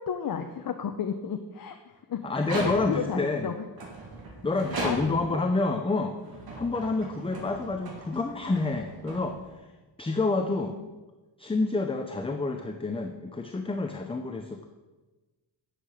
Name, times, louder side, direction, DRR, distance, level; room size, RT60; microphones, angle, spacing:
voice 1, 0.0-3.7 4.8-5.4 10.5-10.9, left 7 dB, 50° left, 7 dB, 0.7 m, -34 dB
voice 2, 2.2-3.5 4.4-6.2 6.6-9.4 10.0-10.8 11.4-14.7, left 3 dB, 15° left, 5 dB, 0.6 m, -28 dB
sound 1, 2.3-3.2 3.8-5.4 6.1-9.7, right 2 dB, 55° right, 3.0 m, -38 dB
10.0 x 7.6 x 6.4 m, 1.2 s
wide cardioid pair, 155°, 44 cm